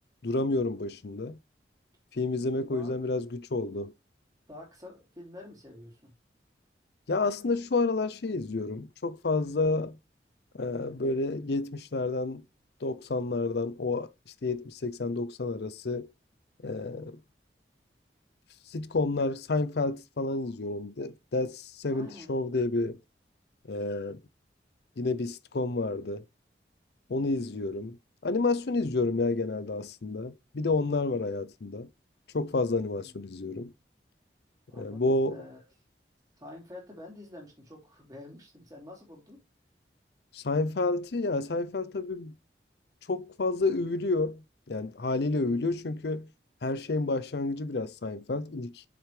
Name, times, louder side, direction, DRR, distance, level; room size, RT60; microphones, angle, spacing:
voice 1, 0.2-1.4 2.1-3.9 7.1-10.0 10.5-12.4 12.8-14.1 14.4-16.1 16.6-17.2 18.7-23.0 23.7-24.2 25.0-26.2 27.1-28.0 28.2-31.9 32.3-33.7 34.8-35.4 40.3-42.4 43.1-44.4 44.7-46.3 46.6-48.8, left 3 dB, 65° left, 0.6 m, -30 dB
voice 2, 2.6-3.0 4.5-6.1 21.9-22.3 32.9-33.2 34.7-35.6 36.4-39.4, left 1 dB, 20° right, 3.4 m, -48 dB
6.6 x 6.2 x 3.3 m
head